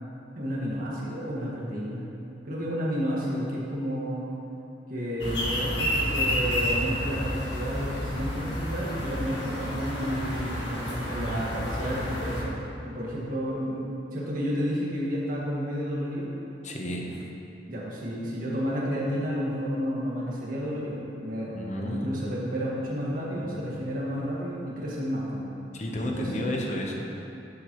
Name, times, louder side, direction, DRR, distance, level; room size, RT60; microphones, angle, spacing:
voice 1, 0.3-2.1 2.4-4.2 4.9-16.3 17.7-25.6 26.0-26.5, equal, 50° right, -6 dB, 1.8 m, -31 dB
sound 1, 5.2-12.4, equal, 70° left, 1.7 m, -30 dB
voice 2, 16.6-17.2 21.5-22.1 23.4-23.5 25.7-27.2, equal, 40° left, 0 dB, 1.0 m, -32 dB
11.5 x 7.4 x 3.1 m, 2.8 s
head